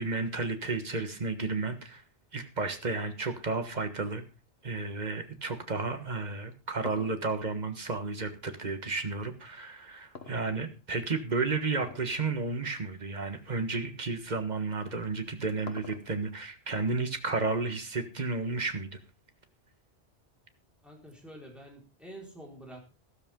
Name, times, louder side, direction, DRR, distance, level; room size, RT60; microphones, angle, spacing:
voice 1, 0.0-2.0 2.3-4.2 4.6-19.0, right 3 dB, 45° right, 8 dB, 1.6 m, -32 dB
sound 1, 6.3-8.8 10.1-11.0 11.7-12.2 12.5-12.6 13.4-13.5 14.9-16.4, left 4 dB, 75° left, 1.6 m, -46 dB
voice 2, 20.8-22.8, right 1 dB, ahead, -2 dB, 4.9 m, -47 dB
13.5 x 13.0 x 3.8 m, 0.32 s
omnidirectional pair, 1.1 m